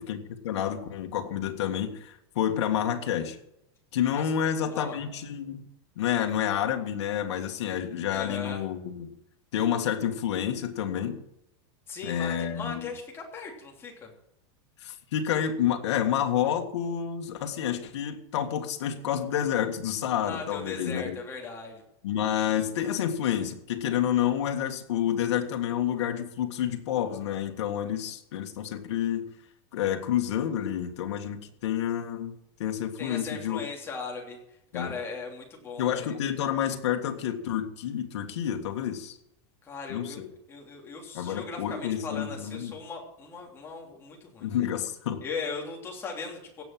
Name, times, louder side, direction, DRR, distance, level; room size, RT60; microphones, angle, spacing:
voice 1, 0.0-3.4 3.9-5.7 6.0-9.1 9.5-11.2 12.0-12.9 14.8-21.2 22.0-29.3 29.7-33.6 34.7-35.0 35.8-39.2 39.9-40.3 41.1-42.7 44.4-45.2, left 9 dB, 80° left, 3 dB, 1.8 m, -29 dB
voice 2, 4.7-5.0 8.1-8.6 11.9-14.1 20.3-21.8 33.0-34.4 34.7-36.2 39.6-40.2 40.5-44.5 45.2-46.6, left 4 dB, 15° left, 0 dB, 3.2 m, -38 dB
17.0 x 7.4 x 7.7 m, 0.81 s
supercardioid pair, 165°, 15 cm